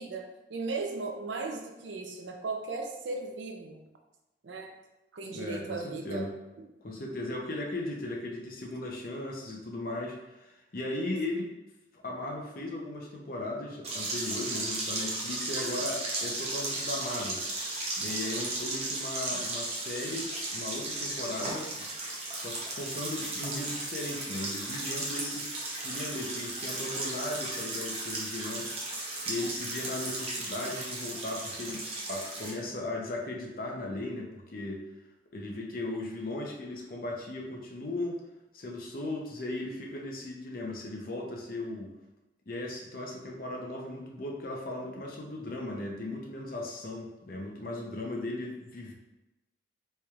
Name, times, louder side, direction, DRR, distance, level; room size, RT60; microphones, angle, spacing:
voice 1, 0.0-3.8 4.4-4.7 5.1-6.3 6.6-6.7, right 3 dB, 85° right, 3 dB, 0.5 m, -37 dB
voice 2, 5.2-6.3 6.8-11.5 11.9-17.4 18.0-21.9 22.3-25.5 25.8-28.8 29.3-34.8 35.3-38.2 38.5-41.9 42.5-48.9, left 2 dB, 50° left, 0 dB, 0.6 m, -37 dB
sound 1, 13.8-32.5, right 2 dB, 35° right, 0.7 m, -35 dB
4.3 x 3.3 x 2.4 m, 0.97 s
head